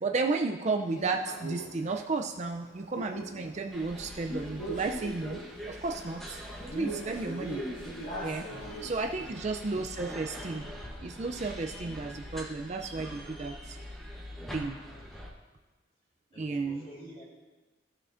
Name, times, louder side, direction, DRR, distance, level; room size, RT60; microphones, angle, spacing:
voice 1, 0.0-5.4 5.7-6.4 6.7-7.6 8.2-8.5 8.8-10.7 11.0-13.8 14.5-14.8 16.4-16.8, right 3 dB, 35° right, 3 dB, 0.4 m, -33 dB
Male speech man speaking, 0.9-9.4, right 1 dB, 80° left, 2.9 m, -42 dB
sound 1, 3.7-15.3, equal, ahead, 0.9 m, -44 dB
voice 2, 8.5-9.4 14.9-15.3 16.3-17.2, equal, 30° left, -6 dB, 3.1 m, -51 dB
14.5 x 6.6 x 2.5 m, 1.2 s
head